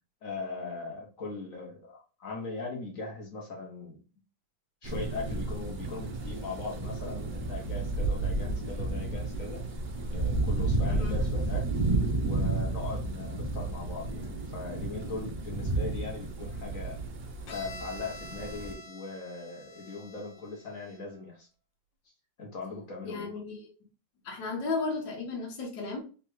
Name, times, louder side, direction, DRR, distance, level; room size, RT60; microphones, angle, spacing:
voice 1, 0.2-4.0 4.8-9.6 10.1-11.7 12.2-17.0 17.5-21.5 22.4-23.3, left 3 dB, 50° left, 0 dB, 1.4 m, -40 dB
sound 1, 4.8-18.7, right 2 dB, 50° right, 0.7 m, -32 dB
Bowed string instrument, 17.5-21.2, left 1 dB, 85° left, 1.5 m, -48 dB
voice 2, 23.0-23.7 24.2-26.0, left 3 dB, 70° left, -1 dB, 1.8 m, -34 dB
3.7 x 3.4 x 3.2 m, 0.35 s
omnidirectional pair, 2.1 m